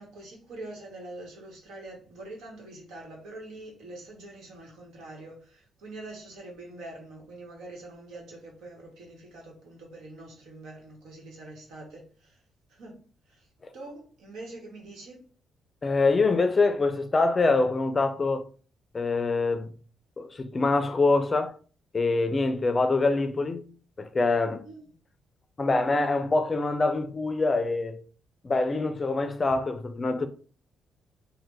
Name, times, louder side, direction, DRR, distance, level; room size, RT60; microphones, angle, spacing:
voice 1, 0.0-12.4 12.7-13.0 13.3-13.5 13.7-15.2 24.6-24.9, right 2 dB, 80° right, 1.2 m, -44 dB
voice 2, 15.8-18.5 18.9-19.7 20.2-21.6 21.9-23.7 24.0-24.6 25.6-28.0 28.4-30.3, left 3 dB, 30° left, 0.4 m, -25 dB
3.2 x 2.2 x 3.2 m
cardioid pair, 90°, 0 cm